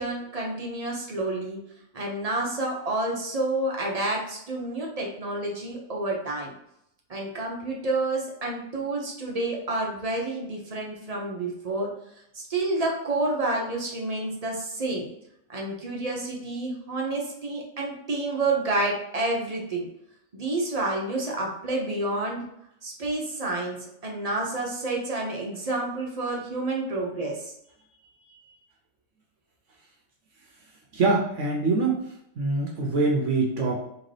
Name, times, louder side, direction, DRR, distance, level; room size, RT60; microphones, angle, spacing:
voice 1, 0.0-1.6 1.9-6.5 7.1-11.9 12.3-15.0 15.5-19.9 20.3-22.4 22.8-27.5 28.3-28.4, right 2 dB, 35° right, -1 dB, 0.6 m, -29 dB
voice 2, 30.9-32.1 32.4-33.8, right 3 dB, 65° right, 0 dB, 1.0 m, -24 dB
3.9 x 2.9 x 3.2 m, 0.76 s
omnidirectional pair, 1.5 m